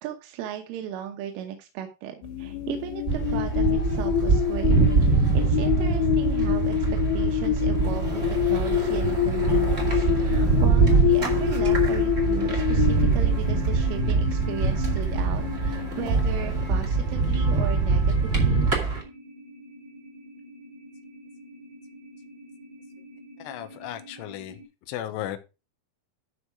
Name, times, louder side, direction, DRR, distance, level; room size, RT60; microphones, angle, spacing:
voice 1, 0.0-4.8 5.3-18.7, right 9 dB, 85° right, 4 dB, 3.6 m, -36 dB
sound 1, 2.2-16.8, left 13 dB, 60° left, 3.2 m, -27 dB
sound 2, 3.1-19.0, right 4 dB, 40° right, 0.9 m, -23 dB
sound 3, 8.4-24.6, equal, 5° left, 1.7 m, -47 dB
voice 2, 23.4-24.6 24.9-25.4, left 12 dB, 85° left, 10 dB, 3.5 m, -35 dB
12.5 x 4.9 x 4.7 m, 0.29 s
omnidirectional pair, 5.5 m